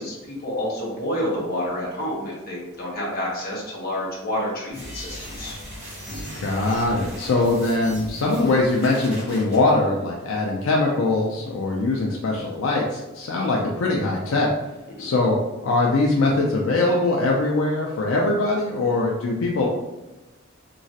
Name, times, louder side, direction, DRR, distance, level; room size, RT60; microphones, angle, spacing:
voice 1, 0.0-5.5 15.0-15.1, left 1 dB, 45° left, -4 dB, 0.9 m, -29 dB
sound 1, 4.7-9.6, equal, 30° right, 1.2 m, -38 dB
voice 2, 6.4-14.5 15.0-15.4 15.6-19.7, left 2 dB, 80° left, -2 dB, 0.4 m, -22 dB
3.0 x 2.4 x 2.7 m, 1.1 s
head